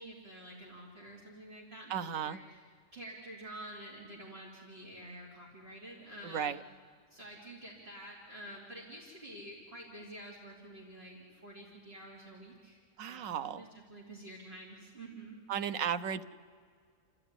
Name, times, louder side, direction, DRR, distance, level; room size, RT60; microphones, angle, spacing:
voice 1, 0.0-6.6 7.1-12.8 13.1-15.4, right 1 dB, 50° right, -4 dB, 3.4 m, -49 dB
voice 2, 1.9-2.4 6.2-6.6 13.0-13.6 15.5-16.2, right 8 dB, 85° right, 10 dB, 1.2 m, -34 dB
29.5 x 13.0 x 9.9 m, 2.1 s
omnidirectional pair, 1.3 m